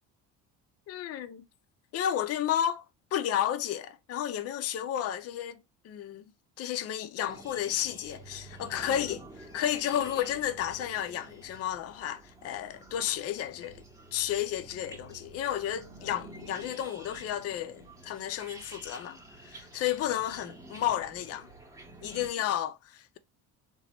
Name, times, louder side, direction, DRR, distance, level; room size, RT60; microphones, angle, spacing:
voice 1, 0.9-1.5 1.9-6.2 6.6-9.2 9.5-13.8 14.1-19.2 19.4-21.5 22.0-23.2, left 11 dB, 40° left, 0.4 m, -32 dB
sound 1, 7.2-22.3, right 2 dB, 10° right, 0.8 m, -49 dB
2.9 x 2.1 x 2.9 m
supercardioid pair, 95°, 37 cm